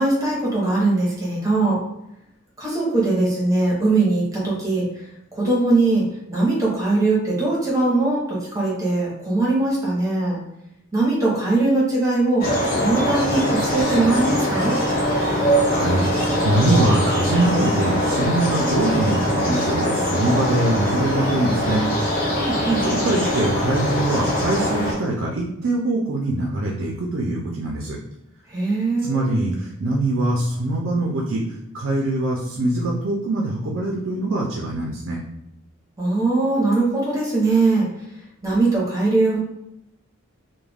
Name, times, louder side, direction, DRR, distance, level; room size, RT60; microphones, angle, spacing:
voice 1, 0.0-1.8 2.6-4.9 5.3-10.4 10.9-12.4 12.7-14.8 22.4-22.9 28.5-29.5 36.0-37.9 38.4-39.4, right 2 dB, 15° right, -5 dB, 0.8 m, -21 dB
sound 1, 12.4-24.9, equal, 45° left, 0.7 m, -22 dB
voice 2, 15.5-21.8 22.8-28.0 29.0-35.2, right 2 dB, 70° right, -1 dB, 0.4 m, -23 dB
2.3 x 2.2 x 3.3 m, 0.82 s
head